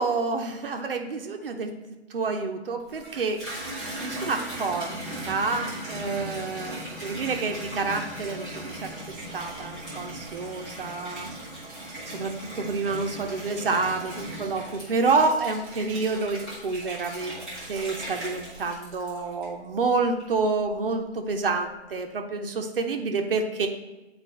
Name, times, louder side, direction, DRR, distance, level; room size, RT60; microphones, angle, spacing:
voice 1, 0.0-1.7 2.1-3.4 4.0-5.0 5.2-8.9 9.3-11.3 12.1-23.7, right 4 dB, 55° right, 4 dB, 0.8 m, -28 dB
Water tap faucet / Bathtub (filling or washing), 2.8-19.7 20.2-20.8, right 1 dB, ahead, 0.4 m, -38 dB
9.4 x 4.4 x 3.2 m, 1.1 s
figure-of-eight pair, 130°, 35 cm